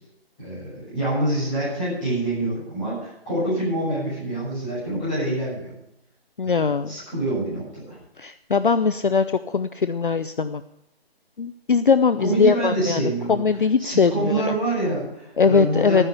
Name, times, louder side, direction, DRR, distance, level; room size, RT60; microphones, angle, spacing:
voice 1, 0.4-5.7 6.4-8.0 12.2-13.4 13.8-16.0, right 2 dB, 10° left, -10 dB, 6.8 m, -26 dB
voice 2, 6.4-6.9 8.2-10.6 11.4-14.5 15.4-16.0, left 5 dB, 55° left, 12 dB, 0.6 m, -21 dB
13.0 x 9.9 x 6.9 m, 0.83 s
hypercardioid pair, 180°, 31 cm